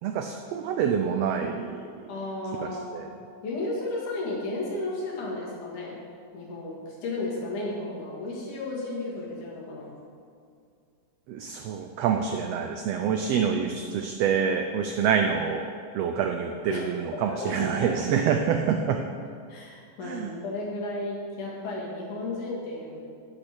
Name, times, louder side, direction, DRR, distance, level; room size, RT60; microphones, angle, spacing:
voice 1, 0.0-2.1 2.6-3.1 11.3-19.0 20.0-20.3, right 7 dB, 90° right, 5 dB, 1.4 m, -27 dB
voice 2, 2.1-3.0 3.4-6.0 6.3-9.9 12.9-13.2 16.7-16.9 17.3-17.9 19.5-23.0, left 2 dB, 80° left, -5 dB, 3.8 m, -33 dB
8.6 x 8.1 x 6.3 m, 2.3 s
omnidirectional pair, 3.5 m